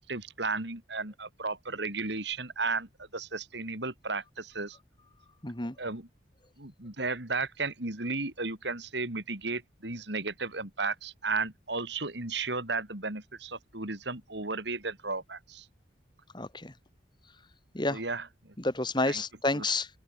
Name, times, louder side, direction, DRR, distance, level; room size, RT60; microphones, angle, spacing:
voice 1, 0.0-4.8 5.8-6.1 6.6-15.7 17.9-18.5 19.1-19.2 19.5-19.7, right 3 dB, 60° right, 3.7 m, -34 dB
voice 2, 5.4-5.8 16.3-16.7 17.7-18.0 18.6-19.9, left 2 dB, 25° left, 1.8 m, -30 dB
open air
head